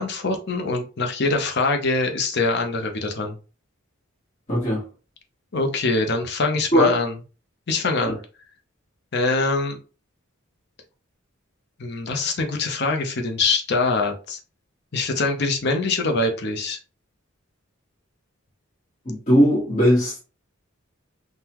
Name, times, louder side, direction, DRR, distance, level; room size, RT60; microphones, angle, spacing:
voice 1, 0.0-3.4 5.5-7.1 7.7-8.2 9.1-9.8 11.8-14.4 14.9-16.8, left 3 dB, 55° left, 0.7 m, -23 dB
voice 2, 4.5-4.8 6.7-6.9 8.1-8.2 19.0-20.1, equal, 35° left, 1.3 m, -18 dB
3.7 x 2.1 x 2.9 m
head